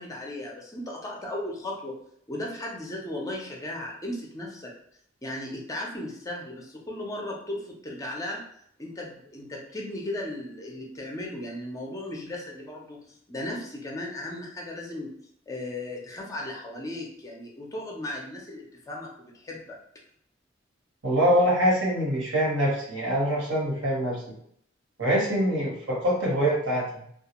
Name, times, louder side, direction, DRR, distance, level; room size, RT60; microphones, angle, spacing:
voice 1, 0.0-2.0 2.3-4.7 5.2-8.4 8.8-15.1 15.5-19.8, left 1 dB, 15° left, -1 dB, 0.4 m, -36 dB
voice 2, 21.0-24.2 25.0-26.9, equal, 70° right, -4 dB, 1.1 m, -24 dB
2.3 x 2.2 x 2.8 m, 0.67 s
head